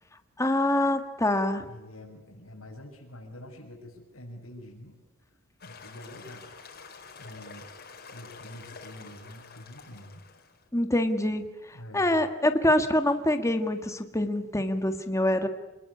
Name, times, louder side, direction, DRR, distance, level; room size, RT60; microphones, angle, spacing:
voice 1, 0.4-1.7 10.7-15.5, left 1 dB, 15° left, 6 dB, 1.8 m, -25 dB
voice 2, 1.7-5.0 5.6-6.5 7.2-7.7 8.1-10.2 11.7-12.1, left 1 dB, 85° left, -1 dB, 6.8 m, -46 dB
sound 1, 5.6-10.7, left 5 dB, 50° left, 5.0 m, -48 dB
28.5 x 21.0 x 9.8 m, 1.1 s
head